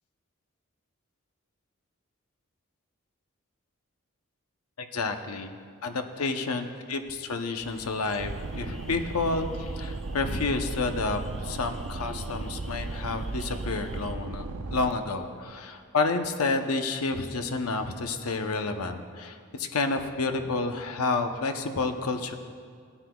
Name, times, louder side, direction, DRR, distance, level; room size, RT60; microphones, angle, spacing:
voice 1, 4.8-5.5 5.8-6.6 6.9-14.5 14.7-22.3, left 3 dB, 80° left, 6 dB, 0.8 m, -30 dB
sound 1, 7.6-14.1, equal, 5° left, 0.6 m, -49 dB
sound 2, 8.2-14.9, right 2 dB, 75° right, 0.6 m, -35 dB
17.0 x 9.8 x 2.3 m, 2.1 s
head